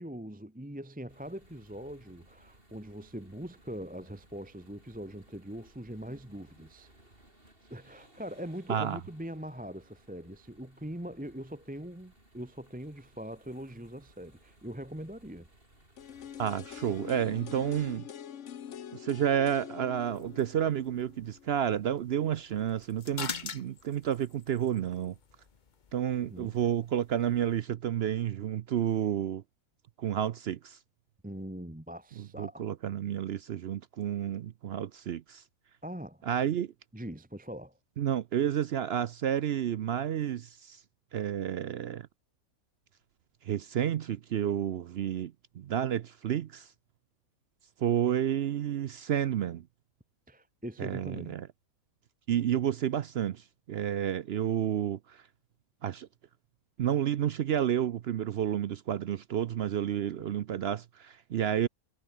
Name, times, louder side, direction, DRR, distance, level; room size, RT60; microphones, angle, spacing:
voice 1, 0.0-6.9 7.7-15.5 26.2-26.5 31.2-32.6 35.8-36.2 36.6-36.7 36.9-37.8 50.3-51.4 60.1-60.2, equal, 5° right, 1.4 m, -42 dB
sound 1, 1.1-18.0, right 1 dB, 40° right, 7.0 m, -61 dB
sound 2, 16.0-21.9 22.2-22.3, left 9 dB, 60° left, 1.2 m, -45 dB
voice 2, 16.4-18.0 18.9-25.1 25.9-29.4 30.0-30.8 32.2-35.4 36.3-36.7 38.0-40.8 41.1-42.1 43.4-46.7 47.8-49.6 50.8-51.5 52.3-55.2 55.8-56.1 56.8-61.7, right 10 dB, 60° right, 0.6 m, -30 dB
sound 3, 19.9-27.6, left 6 dB, 35° left, 1.0 m, -46 dB
omnidirectional pair, 1.5 m